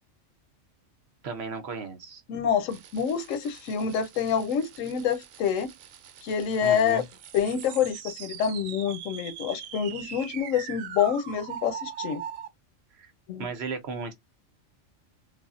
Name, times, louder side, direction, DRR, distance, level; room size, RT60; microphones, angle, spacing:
voice 1, 1.2-2.2 6.6-7.0 12.9-13.1 13.4-14.1, right 4 dB, 60° right, 0.9 m, -35 dB
voice 2, 2.3-5.7 6.2-7.0 7.3-12.2 13.3-13.5, left 7 dB, 85° left, 1.0 m, -27 dB
sound 1, 2.7-12.5, right 9 dB, 85° right, 1.0 m, -42 dB
3.4 x 2.0 x 2.4 m
omnidirectional pair, 1.3 m